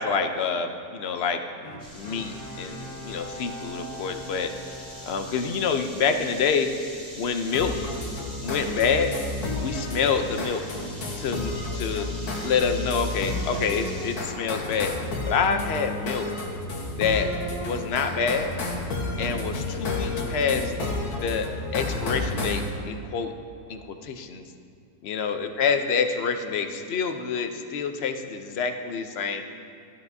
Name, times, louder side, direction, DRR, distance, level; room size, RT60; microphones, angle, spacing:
voice 1, 0.0-1.4 1.9-4.5 5.0-6.7 7.1-7.8 8.4-9.2 9.6-10.7 11.2-12.1 12.4-14.9 15.2-16.3 17.0-17.3 17.6-18.5 19.2-20.7 21.1-23.3 23.7-24.4 25.0-29.4, left 6 dB, 60° left, 7 dB, 0.7 m, -27 dB
Bowed string instrument, 1.6-6.1 6.6-6.7, equal, 30° left, 1.1 m, -42 dB
sound 1, 1.8-14.2, equal, ahead, 2.7 m, -44 dB
sound 2, 7.5-22.7, left 2 dB, 85° left, 1.7 m, -31 dB
13.0 x 12.5 x 2.6 m, 2.4 s
omnidirectional pair, 1.6 m